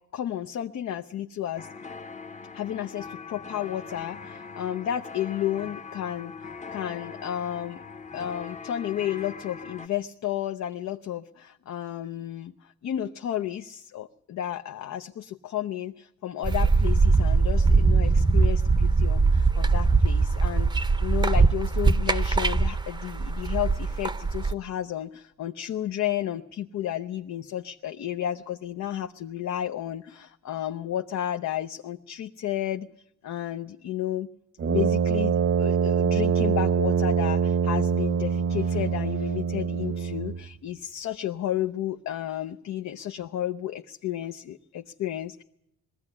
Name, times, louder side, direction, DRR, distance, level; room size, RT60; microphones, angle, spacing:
voice 1, 0.1-1.7 2.5-6.3 6.7-7.8 8.1-20.7 21.0-32.9 33.2-34.3 34.7-45.4, left 11 dB, 65° left, 7 dB, 0.7 m, -32 dB
sound 1, 1.6-9.9, left 5 dB, 25° left, 0.8 m, -41 dB
sound 2, 16.4-24.5, right 4 dB, 15° right, 0.7 m, -22 dB
Brass instrument, 34.6-40.5, right 6 dB, 50° right, 0.8 m, -24 dB
20.5 x 15.0 x 9.9 m, 0.80 s
cardioid pair, 90°, 30 cm